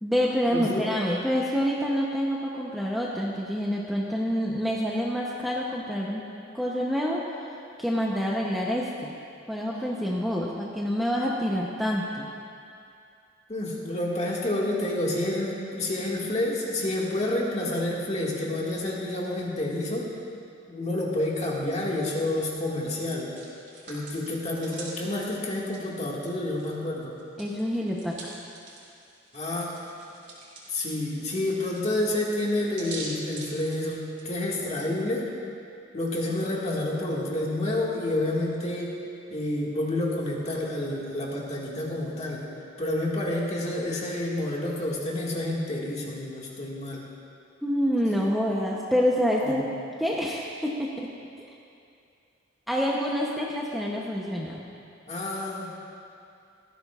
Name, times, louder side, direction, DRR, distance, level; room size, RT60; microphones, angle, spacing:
voice 1, 0.0-6.2 6.5-9.1 9.5-12.3 27.4-28.3 47.6-49.7 50.0-51.1 51.4-51.5 52.7-54.7, equal, ahead, -4 dB, 0.7 m, -27 dB
voice 2, 0.5-0.9 13.5-20.1 20.7-23.3 23.9-27.2 29.3-29.8 30.7-35.3 35.9-39.0 39.3-42.5 42.8-47.1 49.4-49.7 55.1-55.7, left 1 dB, 35° left, -3 dB, 1.8 m, -29 dB
Hands, 23.1-26.7 27.0-34.3, right 3 dB, 40° right, 3.2 m, -45 dB
17.5 x 14.0 x 2.4 m, 2.5 s
head